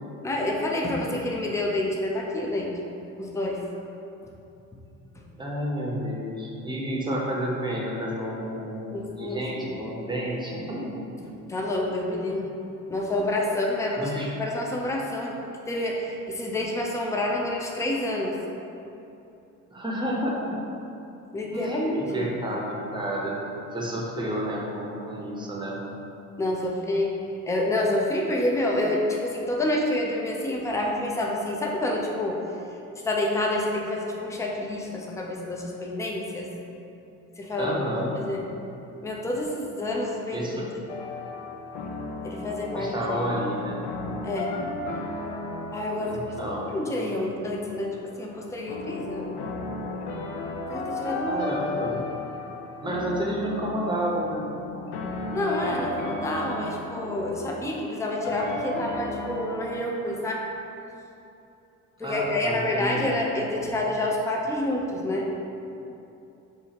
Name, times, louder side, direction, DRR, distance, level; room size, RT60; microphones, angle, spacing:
voice 1, 0.2-2.8 3.2-3.6 8.9-9.8 11.5-12.6 12.9-14.1 14.4-15.3 15.7-18.4 21.3-22.3 26.4-27.1 27.4-32.4 33.0-36.5 37.4-37.7 38.2-38.4 39.0-40.8 42.2-43.0 44.2-44.6 45.7-49.4 50.7-51.4 55.3-60.4 62.0-65.3, left 1 dB, 5° left, -2 dB, 0.5 m, -28 dB
voice 2, 5.4-11.3 14.0-14.3 19.7-20.5 21.5-23.4 23.7-25.8 37.6-38.1 40.3-40.6 42.7-43.9 46.1-46.7 47.0-47.1 51.3-52.0 52.8-54.5 62.0-63.1, equal, 10° right, -4 dB, 0.8 m, -30 dB
sound 1, 40.9-59.8, left 2 dB, 60° left, 0.6 m, -35 dB
4.8 x 2.3 x 2.8 m, 2.8 s
hypercardioid pair, 55°, 43 cm